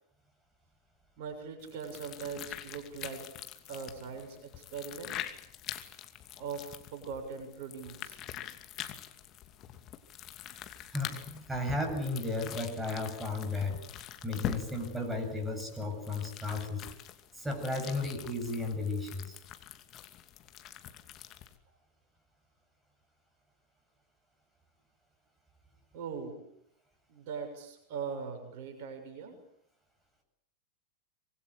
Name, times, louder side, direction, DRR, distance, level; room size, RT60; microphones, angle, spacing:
voice 1, 1.2-3.3 3.7-5.3 6.4-8.2 25.9-26.4 27.1-29.4, right 5 dB, 50° right, 5 dB, 7.0 m, -41 dB
sound 1, 1.6-21.6, left 11 dB, 35° left, 2.6 m, -44 dB
voice 2, 10.9-16.9 17.3-19.4, left 2 dB, 5° right, 2 dB, 7.8 m, -34 dB
25.0 x 22.5 x 8.5 m, 0.73 s
figure-of-eight pair, 90°, 0 cm